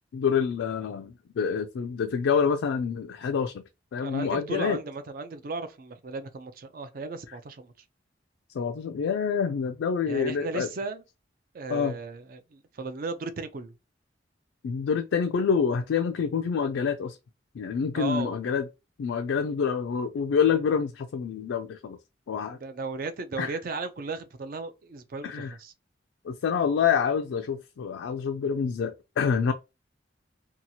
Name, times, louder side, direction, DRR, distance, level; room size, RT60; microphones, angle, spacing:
voice 1, 0.1-3.6 3.9-4.8 8.5-10.7 11.7-11.9 14.6-17.2 17.5-18.7 19.0-22.0 22.3-22.6 23.4-23.6 25.2-25.5 26.2-29.5, left 6 dB, 85° left, 0.3 m, -27 dB
voice 2, 4.0-7.7 10.1-11.0 11.5-13.7 17.9-18.4 22.6-25.7, right 3 dB, 50° right, 0.4 m, -35 dB
2.8 x 2.3 x 2.7 m
head